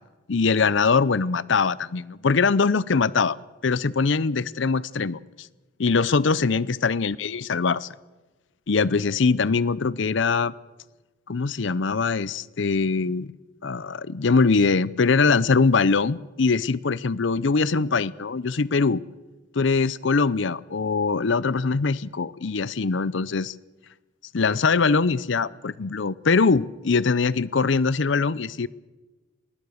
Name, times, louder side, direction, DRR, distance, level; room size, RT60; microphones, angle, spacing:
voice 1, 0.3-3.4 3.6-5.5 5.8-7.9 8.7-10.5 11.3-13.3 13.6-19.0 19.5-23.5 24.3-28.7, left 4 dB, 65° left, 20 dB, 0.6 m, -22 dB
22.0 x 19.5 x 6.5 m, 1.2 s
head